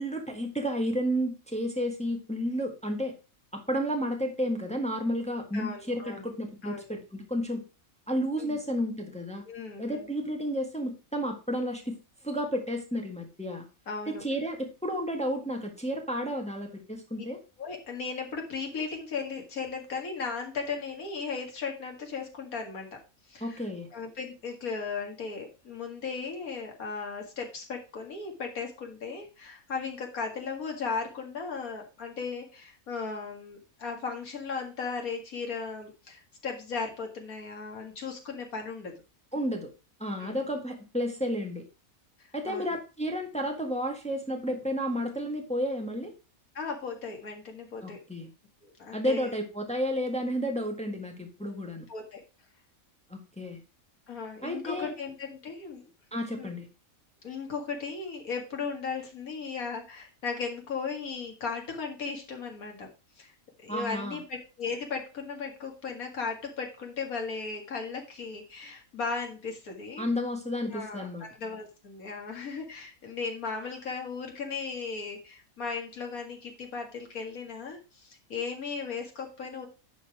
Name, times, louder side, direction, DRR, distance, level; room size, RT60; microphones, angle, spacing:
voice 1, 0.0-3.2 3.5-7.6 8.1-9.4 9.8-12.0 12.2-13.6 14.1-17.4 23.4-23.9 39.3-39.7 40.0-41.6 42.3-46.1 47.8-48.3 48.9-51.9 53.1-53.6 54.4-54.9 56.1-56.7 63.7-64.2 70.0-71.2, equal, 5° left, 3 dB, 1.5 m, -31 dB
voice 2, 5.5-6.2 6.6-7.0 8.4-8.6 9.5-10.1 13.9-14.2 17.6-22.9 23.3-23.6 23.9-38.9 40.2-40.4 42.2-42.8 46.5-48.0 48.6-49.3 51.4-52.2 54.1-55.9 56.4-56.5 57.2-62.9 63.2-63.3 63.6-70.1 70.7-71.1 71.4-79.7, left 5 dB, 80° left, 2 dB, 2.4 m, -36 dB
11.0 x 4.1 x 4.8 m, 0.31 s
omnidirectional pair, 1.5 m